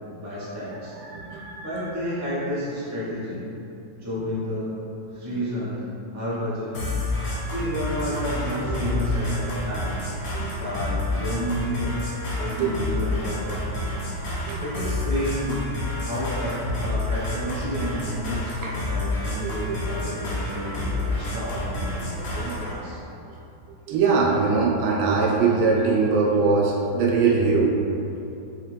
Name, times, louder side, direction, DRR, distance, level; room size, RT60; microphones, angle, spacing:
voice 1, 0.1-0.9 1.6-3.5 4.0-4.7 5.1-5.8 6.1-6.8 7.4-10.0 10.6-11.9 12.3-13.9 14.6-15.7 16.0-23.0, equal, 15° right, -10 dB, 0.5 m, -31 dB
voice 2, 1.0-1.7 8.7-8.8 10.3-10.5 12.6-13.0 14.4-14.6 18.6-18.7 19.4-19.8 22.3-22.9 23.9-27.7, right 4 dB, 90° right, -2 dB, 1.4 m, -22 dB
sound 1, 6.7-22.7, left 2 dB, 80° left, 0.6 m, -29 dB
3.5 x 3.2 x 3.2 m, 2.8 s
omnidirectional pair, 2.1 m